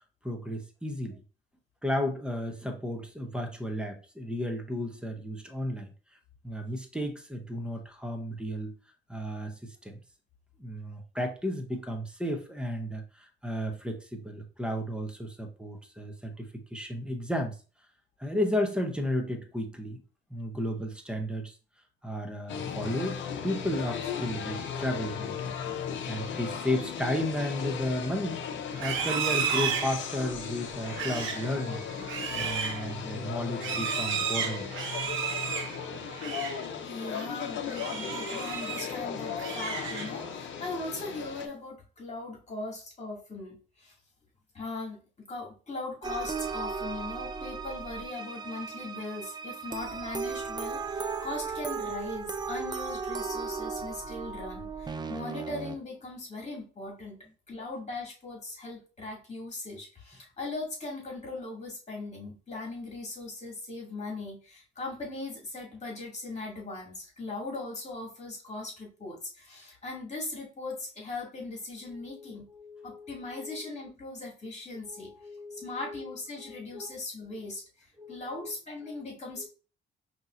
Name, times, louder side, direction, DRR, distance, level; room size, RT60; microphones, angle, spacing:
voice 1, 0.2-1.2 1.8-5.9 6.4-8.7 9.1-10.0 10.6-17.6 18.2-20.0 20.3-21.6 22.0-25.5 25.8-28.4 28.8-31.9 32.3-34.8 71.9-73.6 74.8-76.9 78.0-78.5 78.9-79.0 79.4-79.5, left 1 dB, 5° right, 4 dB, 0.8 m, -34 dB
sound 1, 22.5-41.5, left 7 dB, 70° left, 0.7 m, -37 dB
Livestock farm animals working animals, 28.7-36.6 37.0-37.3 37.7-39.0 39.3-40.3, right 7 dB, 80° right, 0.9 m, -33 dB
voice 2, 36.8-43.9 44.5-45.0 45.3-57.2 57.5-72.4 72.8-75.1 75.5-79.5, left 2 dB, 35° left, -2 dB, 2.3 m, -39 dB
sound 2, 46.0-55.8, right 5 dB, 20° right, 0.4 m, -36 dB
5.3 x 2.9 x 2.5 m, 0.36 s
cardioid pair, 90°, 20 cm